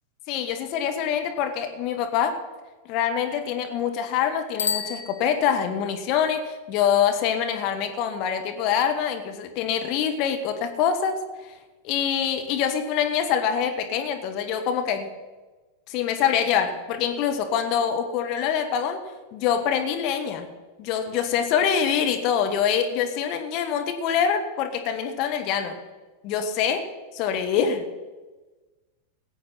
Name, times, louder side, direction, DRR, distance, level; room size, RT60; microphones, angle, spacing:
voice 1, 0.3-2.4 2.9-11.2 11.8-15.1 15.9-19.0 19.3-20.5 20.8-25.8 26.2-26.8 27.1-27.9, left 8 dB, 40° left, 6 dB, 1.6 m, -25 dB
Bicycle bell, 4.5-5.9, left 7 dB, 65° left, 1.1 m, -31 dB
18.5 x 7.8 x 5.7 m, 1.2 s
figure-of-eight pair, 90°, 0 cm